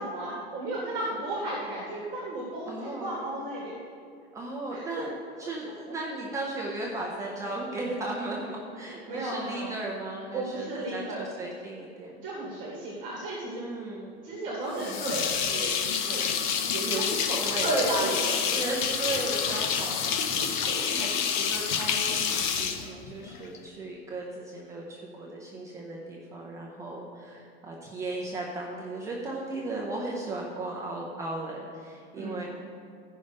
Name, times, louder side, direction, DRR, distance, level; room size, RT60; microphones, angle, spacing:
voice 1, 0.0-3.8 4.7-5.0 9.1-9.7 10.3-11.3 12.2-13.6 14.2-16.3 16.7-16.8 17.6-18.6 20.3-21.0 32.1-32.5, right 1 dB, 25° right, -4 dB, 2.0 m, -33 dB
voice 2, 2.7-3.3 4.3-5.1 5.4-12.2 13.4-14.3 16.8-32.4, right 2 dB, 10° right, -3 dB, 0.5 m, -36 dB
sound 1, 14.8-23.6, left 7 dB, 50° left, 0.8 m, -28 dB
14.5 x 5.4 x 5.1 m, 2.4 s
supercardioid pair, 175°, 31 cm